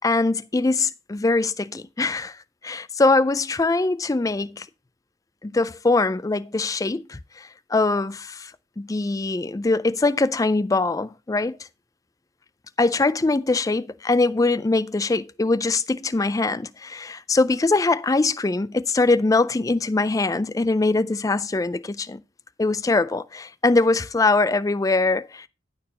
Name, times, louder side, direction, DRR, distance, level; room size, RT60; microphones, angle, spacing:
voice 1, 0.0-2.4 2.6-4.7 5.4-8.5 8.8-11.6 12.8-22.2 22.6-25.5, left 3 dB, 15° left, 0.3 m, -22 dB
11.0 x 4.4 x 5.3 m
head